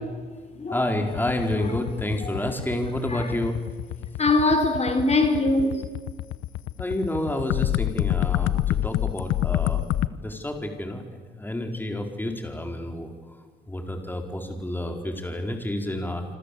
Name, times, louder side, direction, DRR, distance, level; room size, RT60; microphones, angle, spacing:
voice 1, 0.7-3.6 6.8-9.9 10.2-11.0 11.3-13.1 13.7-16.4, left 1 dB, 10° left, 4.3 m, -29 dB
sound 1, 1.1-10.1, left 13 dB, 90° left, 0.9 m, -27 dB
voice 2, 4.2-5.8, left 2 dB, 35° left, 4.0 m, -22 dB
26.5 x 26.0 x 8.4 m
cardioid pair, 90°, 20 cm